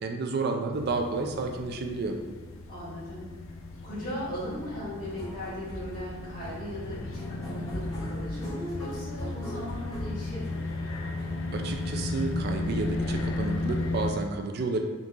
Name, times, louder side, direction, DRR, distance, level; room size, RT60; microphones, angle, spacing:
voice 1, 0.0-2.1 11.5-14.8, right 3 dB, 55° right, 4 dB, 0.4 m, -31 dB
sound 1, 0.7-14.1, left 2 dB, 80° left, 0.4 m, -35 dB
voice 2, 2.7-3.3 3.8-10.6, left 1 dB, 50° left, -13 dB, 1.3 m, -38 dB
sound 2, 5.0-11.3, equal, 20° left, 0.8 m, -40 dB
3.7 x 2.8 x 2.4 m, 1.4 s
head